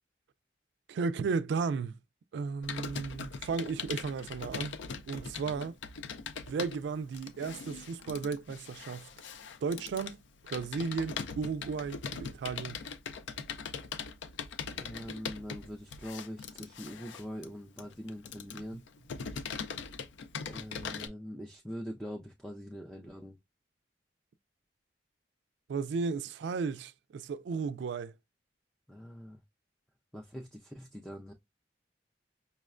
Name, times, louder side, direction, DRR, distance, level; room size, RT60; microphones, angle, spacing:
voice 1, 0.9-2.0 2.3-4.8 5.1-5.7 6.5-9.1 9.6-10.2 10.5-12.8 25.7-28.1, right 5 dB, 75° right, 0.3 m, -34 dB
Computer keyboard, 2.6-21.1, left 6 dB, 90° left, 0.4 m, -41 dB
voice 2, 14.7-18.8 20.4-23.4 28.9-29.4 30.1-31.3, equal, 5° left, 0.4 m, -43 dB
5.4 x 2.1 x 2.4 m
head